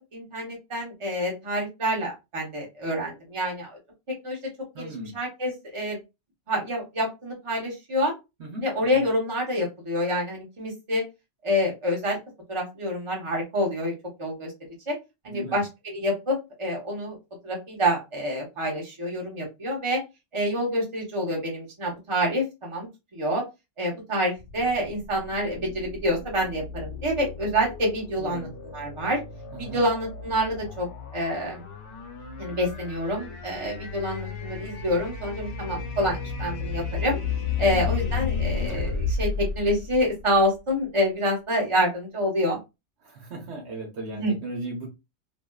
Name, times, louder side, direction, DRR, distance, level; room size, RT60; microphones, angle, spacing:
voice 1, 0.1-3.8 4.2-4.4 4.8-6.0 6.5-8.1 8.6-11.0 11.4-12.2 12.5-13.9 14.2-14.5 14.9-15.0 15.2-17.2 17.4-20.0 20.3-22.9 23.1-23.4 23.8-28.5 28.7-29.2 29.6-30.9 31.1-31.6 32.4-37.2 37.6-42.6 44.1-44.3, equal, 25° right, 1.0 m, -27 dB
voice 2, 4.7-5.2 8.4-9.0 15.3-15.6 28.2-28.6 29.5-29.9 37.6-38.0 43.0-44.9, right 2 dB, 70° right, 1.1 m, -37 dB
sound 1, 24.4-40.6, left 5 dB, 75° left, 0.9 m, -33 dB
2.6 x 2.4 x 2.2 m
omnidirectional pair, 1.2 m